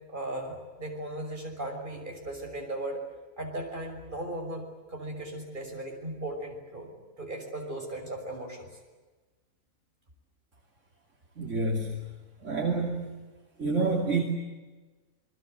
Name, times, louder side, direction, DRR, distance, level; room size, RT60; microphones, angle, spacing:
voice 1, 0.1-3.0 3.4-6.9 7.2-8.7, right 1 dB, 35° right, 2 dB, 6.3 m, -37 dB
voice 2, 11.4-12.1 12.4-13.2 13.6-14.2, right 3 dB, 60° right, 1 dB, 3.1 m, -28 dB
28.5 x 22.0 x 8.0 m, 1.3 s
omnidirectional pair, 1.5 m